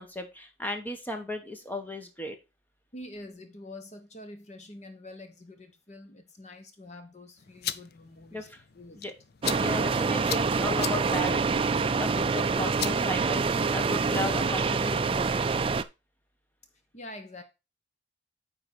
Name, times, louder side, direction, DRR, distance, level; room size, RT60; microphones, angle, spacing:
voice 1, 0.0-2.4 8.3-8.6 8.9-9.1 9.5-15.3, left 1 dB, 10° left, 1.2 m, -35 dB
voice 2, 2.9-8.5 8.7-9.1 16.9-17.4, left 1 dB, 35° left, 1.2 m, -46 dB
sound 1, 7.4-13.9, left 10 dB, 50° left, 0.5 m, -40 dB
sound 2, 9.4-15.8, right 4 dB, 30° right, 0.3 m, -26 dB
9.7 x 3.9 x 4.8 m
head